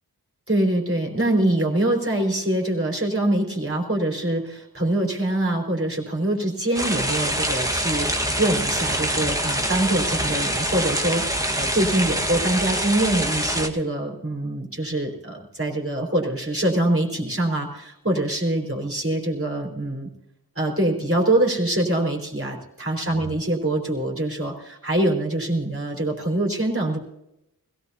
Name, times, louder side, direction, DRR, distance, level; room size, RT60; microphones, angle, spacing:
voice 1, 0.5-20.1 20.6-27.0, right 1 dB, 35° right, -1 dB, 4.1 m, -24 dB
sound 1, 6.7-13.7, right 1 dB, 10° right, 1.5 m, -25 dB
21.0 x 16.5 x 2.8 m, 0.84 s
wide cardioid pair, 45°, 37 cm